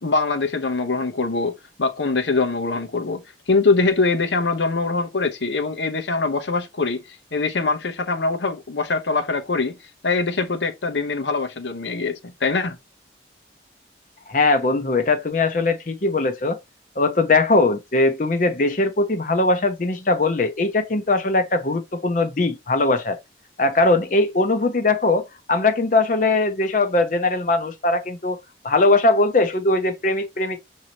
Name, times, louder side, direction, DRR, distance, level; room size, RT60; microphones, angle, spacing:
voice 1, 0.0-7.0 7.3-9.7 10.0-12.8, left 3 dB, 85° left, 0.8 m, -23 dB
voice 2, 14.3-16.6 17.0-23.2 23.6-28.4 28.6-30.6, left 2 dB, 45° left, 0.6 m, -20 dB
6.3 x 2.8 x 2.8 m
head